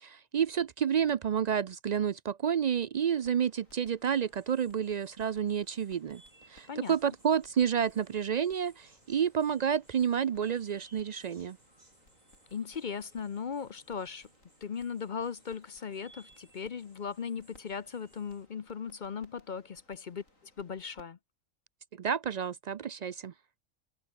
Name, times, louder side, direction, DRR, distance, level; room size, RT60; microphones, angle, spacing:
voice 1, 0.0-6.2 6.5-11.6 22.0-23.3, right 8 dB, 70° right, 0.4 m, -30 dB
sound 1, 2.9-21.0, left 2 dB, 85° left, 7.3 m, -65 dB
sound 2, 4.0-18.5, right 2 dB, 30° right, 3.1 m, -63 dB
voice 2, 12.5-14.3 14.6-20.2 20.6-21.2, left 6 dB, 45° left, 0.7 m, -38 dB
open air
omnidirectional pair, 1.3 m